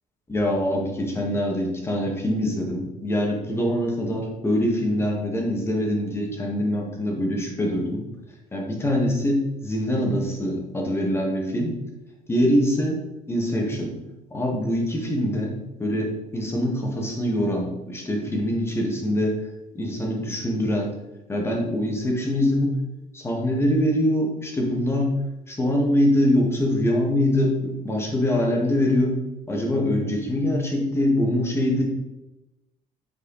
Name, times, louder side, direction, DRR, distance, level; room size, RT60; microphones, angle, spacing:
voice 1, 0.3-8.0 8.5-11.8 12.3-13.0 13.3-14.0 14.3-19.4 19.7-20.9 21.3-22.7 23.1-25.1 25.5-29.2 29.5-31.8, left 1 dB, 15° left, 0 dB, 1.8 m, -24 dB
8.8 x 4.8 x 4.1 m, 0.98 s
cardioid pair, 145°, 15 cm